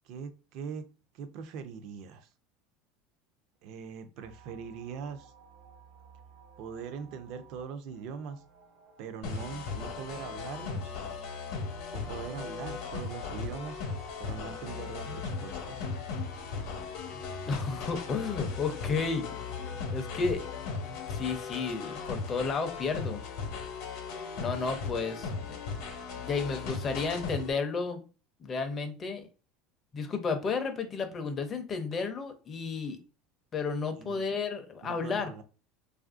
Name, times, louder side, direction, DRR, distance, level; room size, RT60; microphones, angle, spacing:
voice 1, 0.0-0.9 1.1-2.3 3.6-5.3 6.6-8.4 9.0-10.9 11.9-13.8 14.2-15.9 33.9-34.2 34.8-35.4, right 6 dB, 55° right, 0.4 m, -41 dB
sound 1, 4.2-18.7, right 3 dB, 75° right, 1.0 m, -56 dB
sound 2, 9.2-27.5, left 4 dB, 60° left, 0.8 m, -37 dB
sound 3, 14.9-21.8, left 10 dB, 80° left, 0.4 m, -48 dB
voice 2, 17.5-20.4 21.1-23.2 24.4-25.6 26.2-28.0 28.4-29.3 29.9-33.0 33.5-35.3, left 4 dB, 25° left, 0.5 m, -32 dB
3.2 x 2.4 x 2.4 m
cardioid pair, 160°, 0 cm